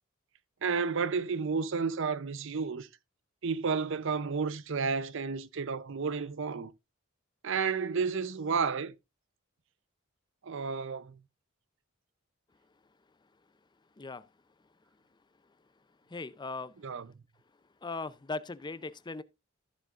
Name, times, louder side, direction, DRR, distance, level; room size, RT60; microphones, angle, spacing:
voice 1, 0.6-2.9 3.4-6.7 7.4-8.9 10.4-11.2 16.8-17.1, right 5 dB, 65° right, 0.7 m, -31 dB
voice 2, 16.1-16.7 17.8-19.2, left 3 dB, 20° left, 0.5 m, -38 dB
14.0 x 7.2 x 2.5 m
head